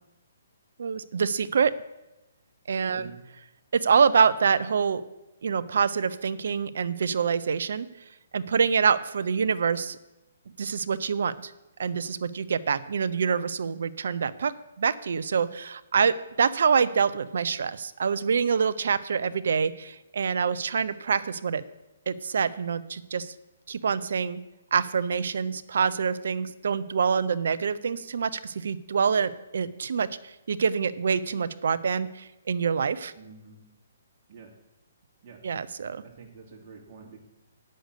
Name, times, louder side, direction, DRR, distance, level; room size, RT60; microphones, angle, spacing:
voice 1, 0.8-1.7 2.7-3.1 3.7-5.0 5.4-7.9 8.3-10.0 10.6-11.5 11.8-14.5 14.8-21.6 22.1-23.3 23.7-24.4 24.7-33.1 35.4-36.0, right 6 dB, 65° right, 14 dB, 0.6 m, -26 dB
voice 2, 33.2-33.6 34.3-34.5 35.2-35.4 36.0-37.2, right 5 dB, 40° right, -1 dB, 2.7 m, -48 dB
7.8 x 6.4 x 8.2 m, 0.98 s
figure-of-eight pair, 135°, 0 cm